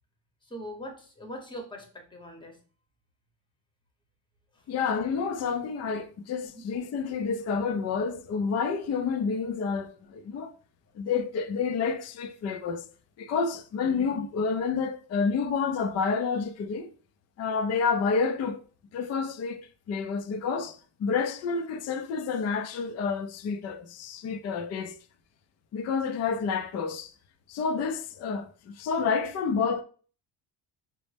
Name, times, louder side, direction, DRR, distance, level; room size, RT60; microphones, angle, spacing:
voice 1, 0.4-2.6 6.4-6.6, equal, 10° left, 0.8 m, -41 dB
voice 2, 4.7-10.5 10.9-12.9 13.2-16.9 17.4-18.6 18.9-25.0 25.7-27.1 27.5-29.8, left 5 dB, 40° left, 0.4 m, -29 dB
5.2 x 2.0 x 3.2 m
cardioid pair, 125°, 43 cm